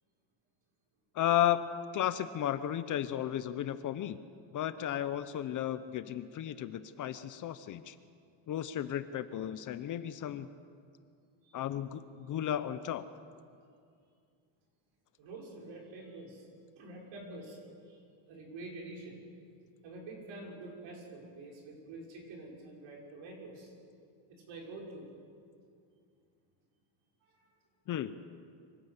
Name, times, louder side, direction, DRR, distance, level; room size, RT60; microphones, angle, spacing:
voice 1, 1.1-4.2 4.5-8.0 8.5-10.5 11.5-13.0 27.9-28.2, left 11 dB, 40° left, 12 dB, 0.7 m, -34 dB
voice 2, 15.2-16.5 16.8-17.6 17.9-18.0 18.3-19.2 19.8-23.7 24.3-25.1 27.2-27.5, right 2 dB, 65° right, -1 dB, 6.1 m, -47 dB
25.0 x 18.0 x 8.1 m, 2.3 s
cardioid pair, 175°, 49 cm